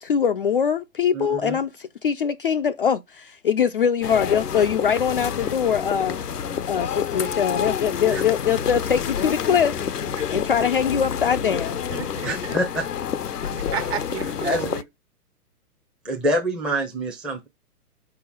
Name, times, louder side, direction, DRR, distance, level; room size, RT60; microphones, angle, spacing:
voice 1, 0.0-6.2 6.7-9.8 10.3-11.8, left 7 dB, 40° left, 0.4 m, -22 dB
voice 2, 1.1-1.6 8.1-8.2 12.2-12.9 14.4-14.7 16.0-17.5, right 1 dB, ahead, 0.6 m, -26 dB
sound 1, 4.0-14.8, left 8 dB, 85° left, 0.7 m, -28 dB
voice 3, 11.9-12.6 13.5-14.8, right 10 dB, 40° right, 1.2 m, -33 dB
4.9 x 4.8 x 5.3 m
figure-of-eight pair, 125°, 46 cm